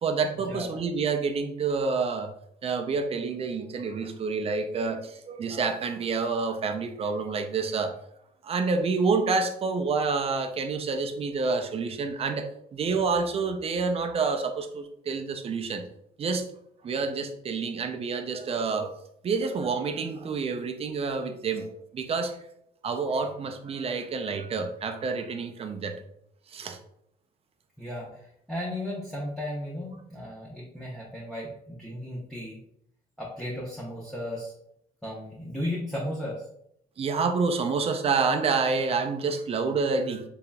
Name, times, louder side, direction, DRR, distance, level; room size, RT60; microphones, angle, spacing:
voice 1, 0.0-2.3 2.6-7.9 8.4-15.8 16.2-16.5 16.8-22.4 22.8-26.0 26.5-26.8 37.0-40.2, right 4 dB, 35° right, 7 dB, 0.5 m, -28 dB
voice 2, 27.8-32.6 33.2-34.5 35.0-36.4, left 1 dB, ahead, -6 dB, 0.8 m, -35 dB
3.8 x 3.4 x 2.3 m, 0.73 s
cardioid pair, 110°, 17 cm